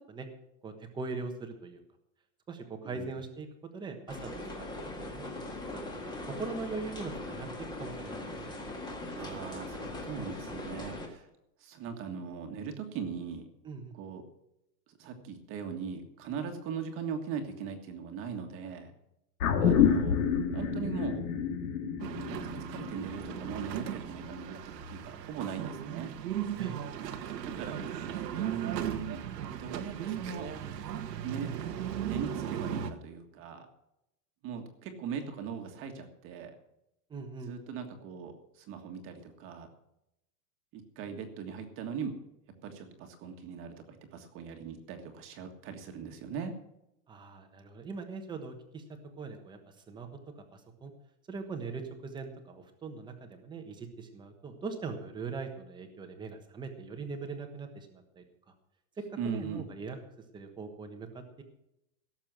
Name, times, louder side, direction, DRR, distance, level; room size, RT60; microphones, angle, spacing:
voice 1, 0.6-1.8 2.5-3.5 3.7-8.6 13.6-13.9 26.6-26.9 37.1-37.5 47.1-48.8 49.2-49.6 49.9-50.1 50.4-50.9 51.3-58.2 59.2-60.0 60.3-61.4, right 4 dB, 10° right, 5 dB, 1.2 m, -41 dB
voice 2, 2.8-3.2 9.2-11.3 11.6-13.5 13.9-14.2 14.9-18.9 19.6-20.2 20.5-21.2 22.2-22.4 22.7-24.6 24.9-26.1 27.4-27.8 28.3-29.2 29.6-30.5 31.2-31.6 32.1-33.7 34.4-36.5 37.5-39.7 40.7-42.1 42.6-46.5 59.2-59.7, right 6 dB, 25° right, 5 dB, 1.7 m, -39 dB
sound 1, 4.1-11.1, left 2 dB, 10° left, 1.6 m, -40 dB
sound 2, 19.4-24.0 24.3-24.4, left 7 dB, 65° left, 2.6 m, -28 dB
sound 3, 22.0-32.9, right 9 dB, 90° right, 1.7 m, -37 dB
17.0 x 7.3 x 6.1 m, 0.83 s
supercardioid pair, 165°, 48 cm